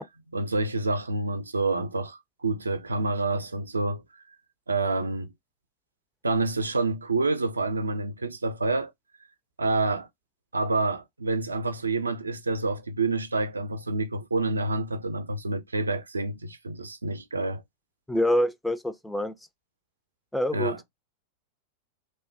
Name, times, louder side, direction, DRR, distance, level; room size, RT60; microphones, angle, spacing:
voice 1, 0.3-4.0 4.7-5.3 6.2-8.9 9.6-10.1 10.5-17.6 20.5-20.8, right 3 dB, 80° right, 0.3 m, -28 dB
voice 2, 18.1-19.3 20.3-20.8, equal, 5° left, 0.3 m, -26 dB
3.1 x 2.1 x 2.5 m
figure-of-eight pair, 90°, 0 cm